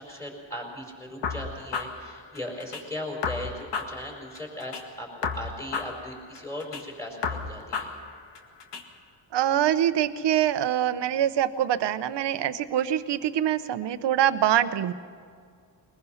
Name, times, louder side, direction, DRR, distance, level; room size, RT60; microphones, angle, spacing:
voice 1, 0.0-7.9, left 1 dB, 5° left, 0 dB, 4.6 m, -38 dB
sound 1, 1.2-2.8 3.2-4.8 5.2-6.8 7.2-8.8, left 5 dB, 65° left, 1.9 m, -33 dB
voice 2, 9.3-14.9, right 11 dB, 65° right, 12 dB, 0.9 m, -24 dB
22.0 x 20.5 x 5.7 m, 2.1 s
cardioid pair, 150°, 45 cm